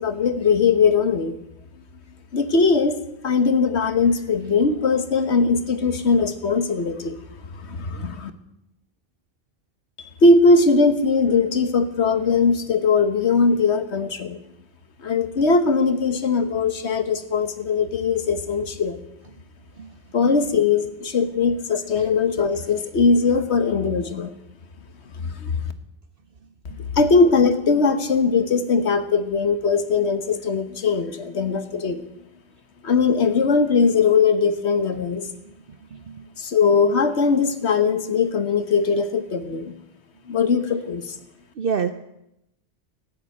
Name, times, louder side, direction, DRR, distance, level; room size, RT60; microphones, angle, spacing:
voice 1, 0.0-1.4 2.3-3.0 3.2-7.1 7.5-8.3 10.2-14.4 15.0-19.0 20.1-24.3 25.2-25.6 26.9-32.0 32.8-35.3 36.4-39.7 40.3-41.1, left 4 dB, 70° left, 10 dB, 1.5 m, -20 dB
voice 2, 35.9-36.3 41.6-41.9, right 6 dB, 55° right, 10 dB, 0.9 m, -27 dB
14.0 x 9.5 x 8.9 m, 0.83 s
omnidirectional pair, 1.2 m